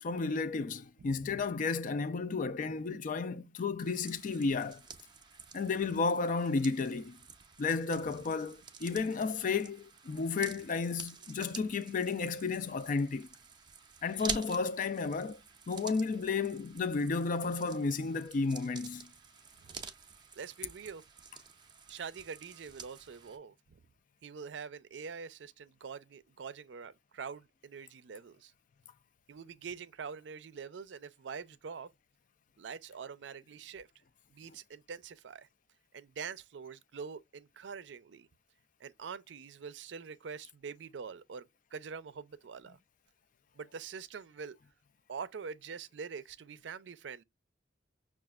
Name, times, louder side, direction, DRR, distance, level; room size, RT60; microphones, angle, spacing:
voice 1, 0.0-4.8 5.5-7.2 7.6-13.3 14.0-15.4 15.7-19.1, left 4 dB, 45° left, 0.4 m, -32 dB
voice 2, 1.0-1.3 8.1-8.2 19.6-19.8 20.4-21.0 21.9-23.8 24.2-28.5 29.3-31.9 32.6-33.9 34.3-35.5 35.9-38.3 38.8-41.5 41.7-42.8 43.5-44.6 45.1-47.2, right 6 dB, 75° right, 0.4 m, -45 dB
sound 1, 3.8-23.4, right 5 dB, 25° right, 0.5 m, -48 dB
5.8 x 2.4 x 2.3 m
head